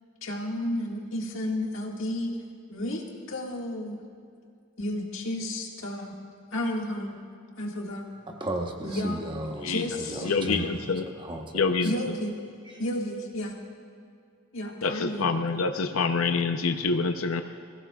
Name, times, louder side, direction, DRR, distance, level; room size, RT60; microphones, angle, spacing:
voice 1, 0.2-2.4 2.7-3.0 3.3-4.0 4.8-6.1 6.5-7.2 7.6-8.0 8.8-9.2 9.6-10.2 11.8-12.3 12.8-13.5 14.5-15.3, left 1 dB, 70° left, -1 dB, 1.9 m, -32 dB
voice 2, 8.3-11.9 12.3-12.4, right 1 dB, 25° right, 2 dB, 1.0 m, -35 dB
voice 3, 10.2-11.1 11.5-11.9 14.8-17.4, left 4 dB, 90° left, 7 dB, 0.6 m, -26 dB
22.5 x 15.5 x 2.4 m, 2.4 s
head